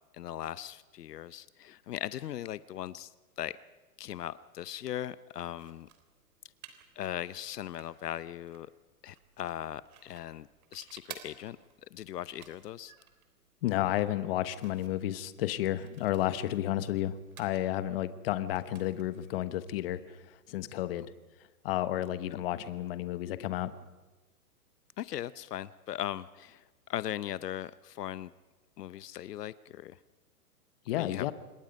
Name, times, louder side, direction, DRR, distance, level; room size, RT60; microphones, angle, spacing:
voice 1, 0.1-3.1 3.4-3.6 4.0-5.9 7.0-8.7 9.0-11.6 11.9-12.9 25.0-28.3 28.8-30.0 31.0-31.3, left 12 dB, 80° left, 17 dB, 0.8 m, -39 dB
sound 1, 5.5-20.7, right 8 dB, 60° right, 3.5 m, -56 dB
voice 2, 13.6-21.1 21.6-23.7 30.9-31.3, left 13 dB, 40° left, 13 dB, 1.1 m, -32 dB
26.5 x 21.0 x 5.3 m, 1.2 s
hypercardioid pair, 155°, 47 cm